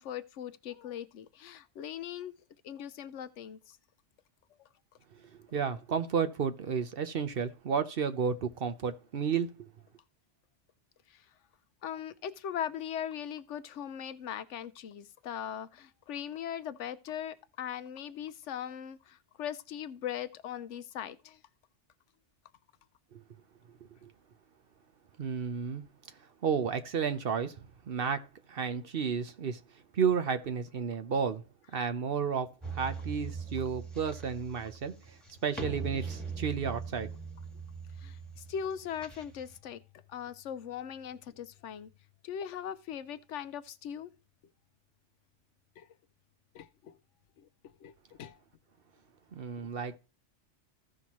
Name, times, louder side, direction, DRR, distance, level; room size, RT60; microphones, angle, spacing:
voice 1, 0.0-2.3 2.6-3.8 4.6-4.7 11.1-11.2 11.8-21.4 38.0-39.8 40.1-41.9 42.2-44.1 45.8-45.9 46.5-47.0 47.4-47.5 47.8-47.9 48.2-48.4, left 9 dB, 75° left, 1.0 m, -40 dB
voice 2, 5.5-9.7 23.1-23.2 24.0-24.1 25.2-25.8 26.4-29.6 29.9-31.4 31.7-35.2 35.4-37.1 49.3-50.0, right 6 dB, 55° right, 0.9 m, -32 dB
sound 1, 32.6-39.6, right 5 dB, ahead, 1.5 m, -41 dB
15.0 x 5.6 x 3.0 m
omnidirectional pair, 1.2 m